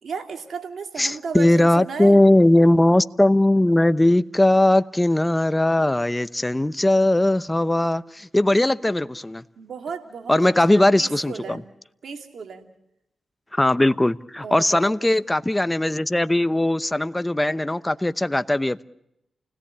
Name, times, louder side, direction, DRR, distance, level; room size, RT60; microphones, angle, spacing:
voice 1, 0.0-2.2 9.6-11.7 12.0-12.7 14.4-14.9, right 5 dB, 70° right, 5 dB, 2.8 m, -34 dB
voice 2, 1.0-9.4 10.3-11.6 13.5-18.8, left 1 dB, 15° left, 15 dB, 0.8 m, -19 dB
29.0 x 17.5 x 8.7 m, 0.85 s
cardioid pair, 55°, 0 cm